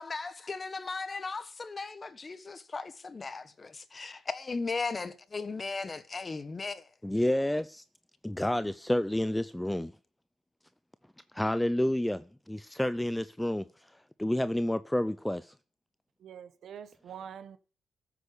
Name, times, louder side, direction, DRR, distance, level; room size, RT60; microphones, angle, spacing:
voice 1, 0.0-6.9, left 4 dB, 30° left, 1.4 m, -37 dB
voice 2, 7.0-7.8 8.2-9.9 11.3-13.9 14.2-15.5, left 1 dB, 5° left, 0.5 m, -29 dB
voice 3, 16.2-17.6, right 8 dB, 65° right, 1.2 m, -45 dB
14.0 x 8.3 x 6.8 m
cardioid pair, 90°, 0 cm